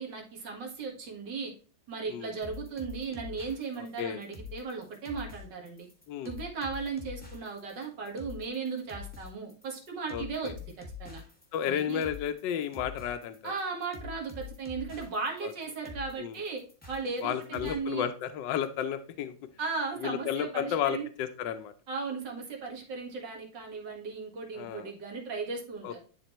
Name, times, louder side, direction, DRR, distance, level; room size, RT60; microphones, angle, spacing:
voice 1, 0.0-1.5 1.9-5.9 6.2-10.7 11.0-11.2 11.7-12.0 13.4-16.6 16.9-18.1 19.6-21.1 21.9-26.0, right 4 dB, 65° right, 1 dB, 2.2 m, -36 dB
sound 1, 2.4-17.8, left 6 dB, 5° left, 1.2 m, -45 dB
voice 2, 3.8-4.2 6.1-6.3 10.1-10.5 11.5-13.5 15.4-15.5 16.2-16.4 17.2-19.3 20.0-21.7 24.6-24.9 25.8-26.0, left 9 dB, 75° left, 9 dB, 1.3 m, -32 dB
11.0 x 3.7 x 3.0 m, 0.39 s
omnidirectional pair, 2.1 m